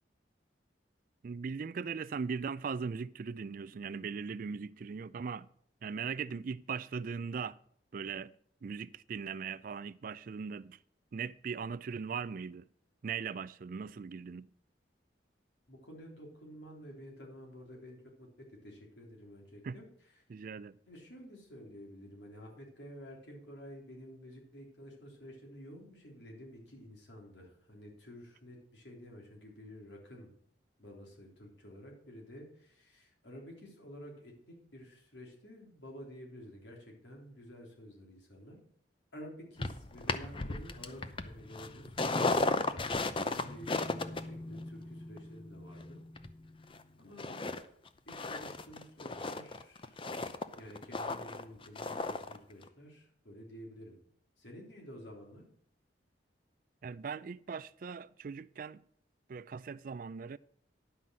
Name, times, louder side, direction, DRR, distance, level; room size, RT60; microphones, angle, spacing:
voice 1, 1.2-5.5 5.8-7.6 7.9-8.3 8.6-10.8 11.1-12.7 13.0-14.5 19.6-19.8 20.3-20.8 56.8-58.8 59.3-60.4, right 5 dB, 50° right, 0.3 m, -39 dB
voice 2, 15.7-19.8 20.9-30.3 30.8-38.6 39.1-46.0 47.0-47.4 48.1-50.0 50.6-54.0 54.4-55.4, equal, 80° left, 3.4 m, -51 dB
sound 1, 39.6-46.8 47.2-47.6 47.9-52.4 52.6-52.7, left 3 dB, 30° left, 0.6 m, -35 dB
11.0 x 5.7 x 7.5 m
head